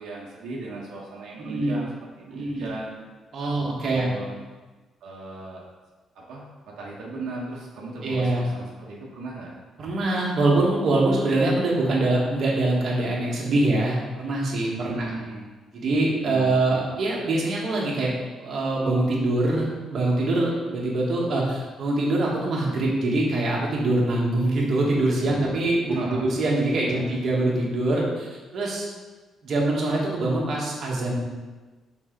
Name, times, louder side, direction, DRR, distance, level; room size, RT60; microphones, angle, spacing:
voice 1, 0.0-3.0 3.4-4.4 5.0-5.6 6.1-9.5 14.9-15.5 16.3-16.8 25.2-25.5 25.9-26.3 26.8-27.1, right 2 dB, 80° right, -3 dB, 1.0 m, -37 dB
voice 2, 1.4-1.8 2.3-2.6 3.3-4.1 8.0-8.5 9.8-15.1 15.7-18.1 18.4-28.8 29.4-31.2, right 2 dB, 45° right, -4 dB, 1.3 m, -24 dB
6.4 x 4.0 x 3.8 m, 1.3 s
cardioid pair, 165°, 0 cm